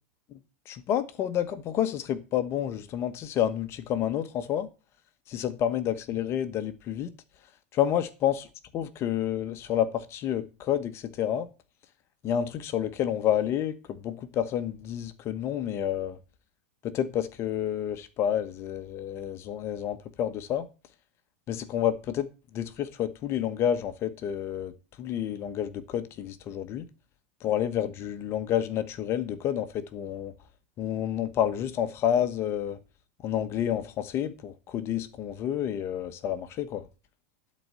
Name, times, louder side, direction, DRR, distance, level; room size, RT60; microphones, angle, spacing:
voice 1, 0.7-4.7 5.3-7.1 7.7-8.4 8.7-11.5 12.2-16.2 16.8-20.7 21.5-26.8 27.4-30.3 30.8-32.8 33.2-36.9, left 10 dB, 40° left, 1.2 m, -29 dB
12.0 x 4.3 x 7.6 m
hypercardioid pair, 100°, 7 cm